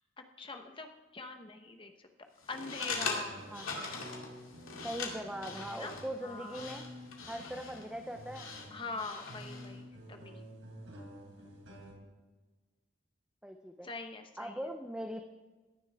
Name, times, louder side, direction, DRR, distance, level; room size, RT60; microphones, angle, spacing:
voice 1, 0.2-0.9 1.1-2.1 2.5-3.4 5.7-6.7 8.7-10.4 13.8-14.6, left 3 dB, 25° left, 5 dB, 1.0 m, -43 dB
sound 1, 2.4-9.7, left 4 dB, 80° left, 2.4 m, -42 dB
sound 2, 2.9-11.9, right 1 dB, 75° right, 3.7 m, -50 dB
voice 2, 4.8-6.8 7.3-8.5 13.4-13.9 14.4-15.2, equal, 5° right, 5 dB, 0.5 m, -40 dB
17.0 x 11.0 x 3.5 m, 1.3 s
head